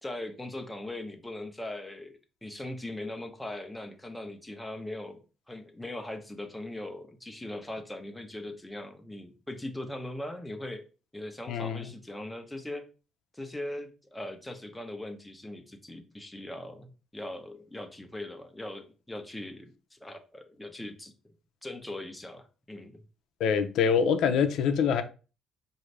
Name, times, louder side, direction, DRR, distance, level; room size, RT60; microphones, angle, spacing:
voice 1, 0.0-5.2 5.5-10.8 11.1-12.8 13.3-21.3 21.6-23.0, left 1 dB, 10° left, 0.9 m, -40 dB
voice 2, 11.5-11.9 23.4-25.0, left 7 dB, 75° left, 0.6 m, -25 dB
4.8 x 2.7 x 3.3 m
cardioid pair, 95°, 0 cm